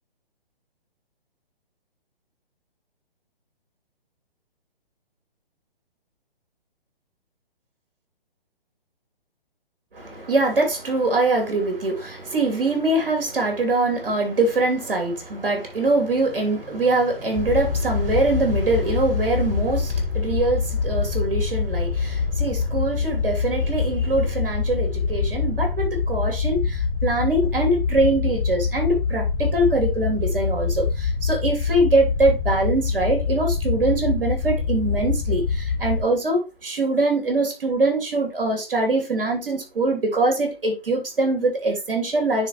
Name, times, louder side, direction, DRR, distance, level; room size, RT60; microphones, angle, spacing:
voice 1, 9.9-42.5, right 2 dB, 65° right, 2.9 m, -23 dB
sound 1, 17.4-36.0, left 5 dB, 30° left, 0.8 m, -25 dB
9.7 x 3.8 x 3.0 m
figure-of-eight pair, 135°, 30 cm